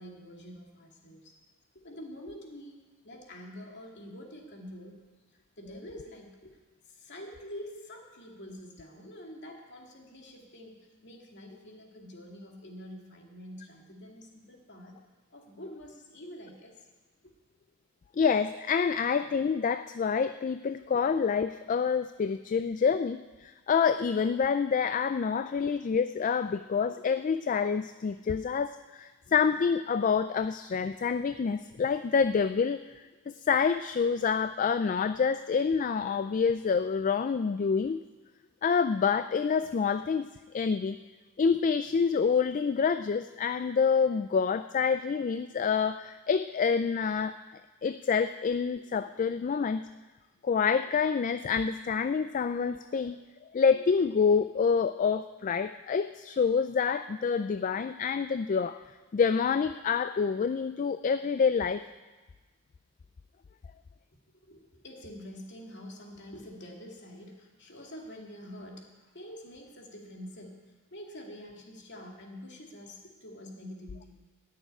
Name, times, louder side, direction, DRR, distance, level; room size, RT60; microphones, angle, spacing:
voice 1, 0.0-1.3 1.7-5.0 5.3-6.6 6.9-10.8 11.0-15.0 15.3-16.9 17.2-17.3 57.4-57.5 64.4-74.2, equal, 55° left, 0 dB, 2.4 m, -46 dB
voice 2, 18.1-32.8 33.3-38.0 38.6-40.3 40.5-41.0 41.4-47.4 47.8-49.9 50.4-53.2 53.5-58.8 59.1-61.8, left 6 dB, 35° left, 11 dB, 0.3 m, -27 dB
14.0 x 6.6 x 9.8 m, 1.3 s
head